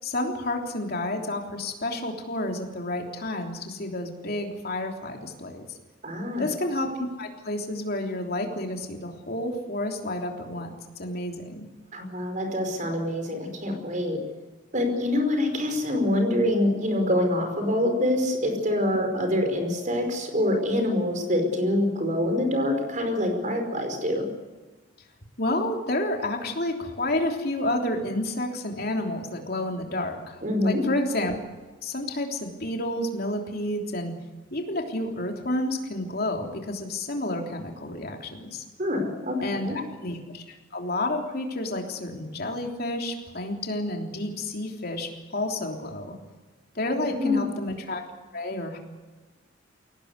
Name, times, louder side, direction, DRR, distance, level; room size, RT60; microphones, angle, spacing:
voice 1, 0.0-5.8 6.4-10.7 11.0-11.7 25.4-31.3 31.8-34.1 34.5-38.6 39.4-46.1 46.7-48.0 48.3-48.8, left 1 dB, 50° left, 2 dB, 3.4 m, -30 dB
voice 2, 6.0-6.5 11.9-14.2 14.7-24.2 30.4-30.8 38.8-39.7 47.1-47.5, left 1 dB, 40° right, 5 dB, 5.0 m, -25 dB
23.0 x 18.0 x 8.3 m, 1.3 s
head